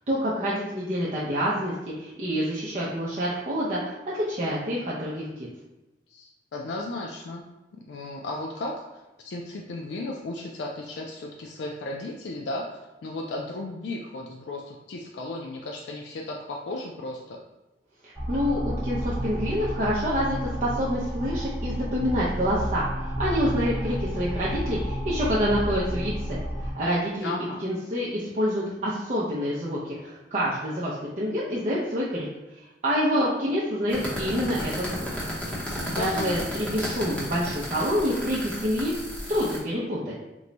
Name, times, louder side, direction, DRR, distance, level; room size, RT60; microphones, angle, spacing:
voice 1, 0.1-5.3 18.0-27.3 27.6-32.3 32.8-35.1 35.9-38.9 39.3-40.1, equal, 40° right, -7 dB, 0.5 m, -27 dB
voice 2, 6.1-7.4 7.9-8.7 9.2-12.7 13.0-17.4 27.2-27.6 35.8-36.4, left 2 dB, 75° left, 0 dB, 0.4 m, -35 dB
sound 1, 18.1-26.7, equal, 15° right, 0.9 m, -31 dB
sound 2, 33.9-39.6, equal, 10° left, 0.8 m, -33 dB
3.0 x 2.2 x 3.9 m, 1.0 s
head